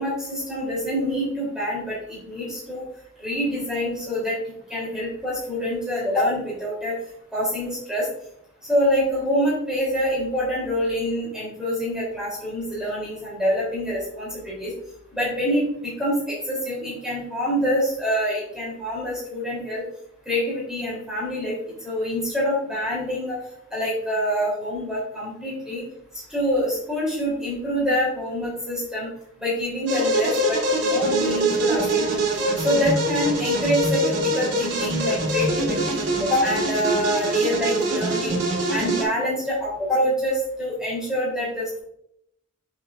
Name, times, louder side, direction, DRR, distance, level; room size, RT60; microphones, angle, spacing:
voice 1, 0.0-2.8 3.2-4.4 4.7-7.0 7.3-8.1 8.6-14.7 15.1-19.8 20.2-21.5 21.8-23.4 23.7-25.8 26.3-29.1 29.4-32.2 32.6-38.4 38.7-41.8, equal, 5° right, -6 dB, 3.2 m, -26 dB
sound 1, 29.9-39.0, right 1 dB, 55° right, 3.3 m, -24 dB
8.9 x 7.3 x 2.5 m, 0.72 s
head